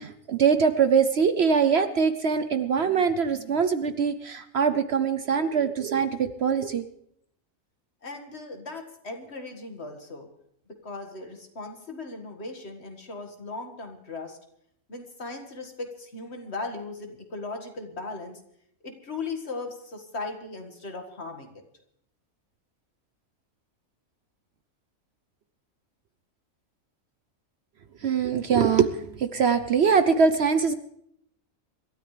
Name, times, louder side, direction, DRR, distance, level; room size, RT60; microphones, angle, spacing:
voice 1, 0.0-6.9 28.0-30.7, right 6 dB, 55° right, 10 dB, 0.9 m, -23 dB
voice 2, 8.0-10.3 10.8-14.4 14.9-18.4 18.8-21.6, left 3 dB, 50° left, 4 dB, 2.1 m, -37 dB
26.5 x 13.0 x 3.3 m, 0.72 s
omnidirectional pair, 1.4 m